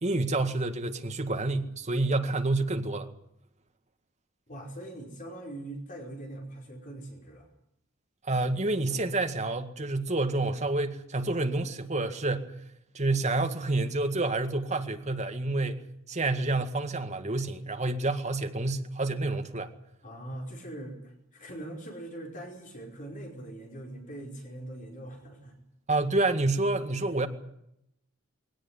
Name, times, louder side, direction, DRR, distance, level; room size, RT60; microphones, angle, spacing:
voice 1, 0.0-3.1 8.2-12.6 12.9-19.7 20.3-20.4 25.9-27.3, right 2 dB, 35° right, 1.9 m, -28 dB
voice 2, 4.5-7.5 20.0-25.5, right 1 dB, 40° left, 5.0 m, -42 dB
21.5 x 17.5 x 9.9 m
head